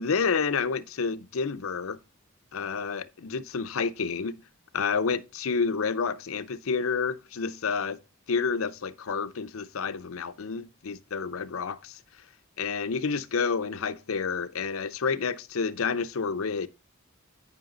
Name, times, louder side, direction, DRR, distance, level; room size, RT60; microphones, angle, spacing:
voice 1, 0.0-2.0 2.5-4.4 4.7-8.0 8.3-12.0 12.6-16.7, left 5 dB, 85° left, 0.6 m, -29 dB
9.1 x 5.7 x 3.8 m
head